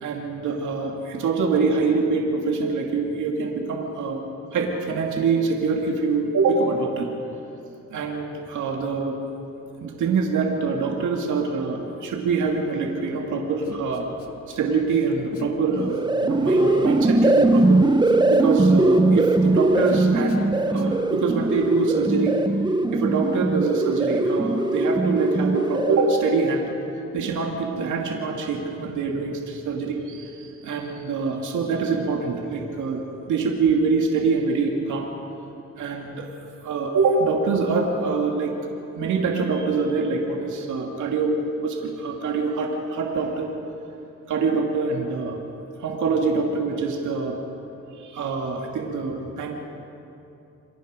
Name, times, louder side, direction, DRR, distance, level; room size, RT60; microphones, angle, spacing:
voice 1, 0.0-4.2 4.5-7.1 7.9-9.2 9.8-14.0 14.5-16.0 16.2-17.8 18.3-22.3 22.9-26.7 27.1-33.0 33.3-35.1 35.8-36.3 36.6-38.5 39.0-41.4 41.6-43.5 44.3-45.4 45.8-47.4 48.0-49.5, right 4 dB, 75° right, 0 dB, 2.6 m, -24 dB
Human voice, 13.6-14.6 14.8-15.6 15.9-21.1, left 5 dB, 50° left, 2.1 m, -38 dB
sound 1, 15.7-26.3, right 2 dB, 15° right, 0.9 m, -20 dB
28.5 x 22.5 x 5.1 m, 2.8 s
cardioid pair, 90°, 30 cm